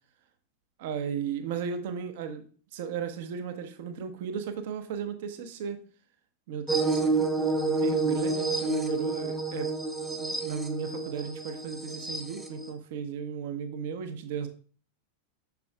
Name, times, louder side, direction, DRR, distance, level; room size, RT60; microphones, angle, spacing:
voice 1, 0.8-5.8 6.5-9.7 10.1-14.5, right 6 dB, 50° right, 8 dB, 0.8 m, -35 dB
sound 1, 6.7-12.7, right 3 dB, 5° right, 0.8 m, -29 dB
6.9 x 6.3 x 2.2 m, 0.40 s
figure-of-eight pair, 90°, 0 cm